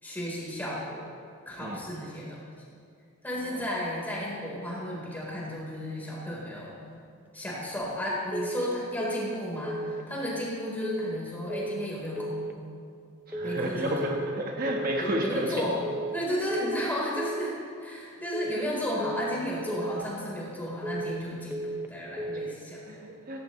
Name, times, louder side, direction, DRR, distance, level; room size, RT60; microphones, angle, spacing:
voice 1, 0.0-1.1 1.5-2.4 3.2-6.8 7.3-12.5 13.4-14.3 15.0-17.5 17.8-23.0, left 1 dB, 10° left, -6 dB, 3.9 m, -33 dB
sound 1, 8.3-8.7 9.0-9.4 9.7-10.1 10.8-11.2 11.5-11.9 12.2-12.6 13.3-13.7 14.0-14.4 14.7-15.1 15.8-16.2 16.5-16.9 17.2-17.6 18.3-18.7 19.0-19.4 19.7-20.1 20.8-21.2 21.5-21.9 22.2-22.6, right 2 dB, 10° right, 0.6 m, -34 dB
voice 2, 13.3-15.5 22.9-23.4, right 1 dB, 45° right, -1 dB, 1.2 m, -31 dB
17.0 x 16.5 x 3.1 m, 2.3 s
head